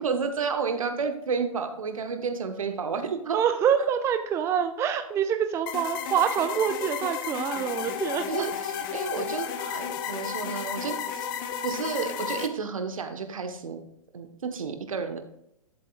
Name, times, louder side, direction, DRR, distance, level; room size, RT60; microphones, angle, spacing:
voice 1, 0.0-3.4 8.3-9.5 9.7-11.3 11.6-13.8 14.1-15.2, right 5 dB, 70° right, 7 dB, 1.3 m, -31 dB
voice 2, 3.3-8.5 9.6-9.8, right 8 dB, 15° right, 8 dB, 0.5 m, -26 dB
sound 1, 5.7-12.5, left 8 dB, 40° left, 0.8 m, -33 dB
11.5 x 7.6 x 2.4 m, 0.80 s
figure-of-eight pair, 115°, 18 cm